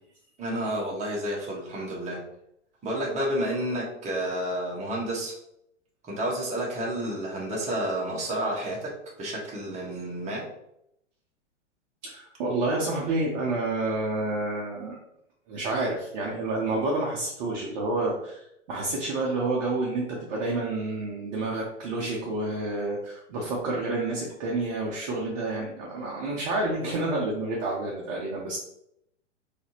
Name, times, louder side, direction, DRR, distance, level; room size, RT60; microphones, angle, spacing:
voice 1, 0.4-2.2 2.8-5.3 6.0-10.5, right 1 dB, 20° right, -3 dB, 1.2 m, -30 dB
voice 2, 12.0-15.0 15.5-28.6, right 2 dB, 35° right, -3 dB, 0.8 m, -29 dB
4.0 x 2.8 x 2.8 m, 0.77 s
figure-of-eight pair, 100°, 36 cm